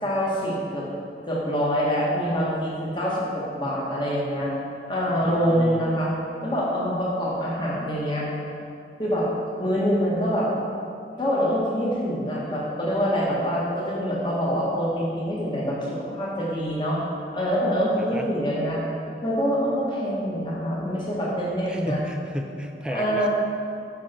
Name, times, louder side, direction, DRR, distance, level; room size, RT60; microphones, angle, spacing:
voice 1, 0.0-0.9 1.2-4.5 4.9-6.1 6.4-8.3 9.0-9.3 9.6-10.5 11.2-17.0 17.3-18.8 19.2-22.0 22.9-23.3, equal, 25° left, -5 dB, 1.5 m, -25 dB
voice 2, 5.2-6.0 18.0-18.3 21.7-23.3, equal, 5° right, 3 dB, 0.4 m, -34 dB
7.4 x 6.5 x 4.4 m, 2.4 s
head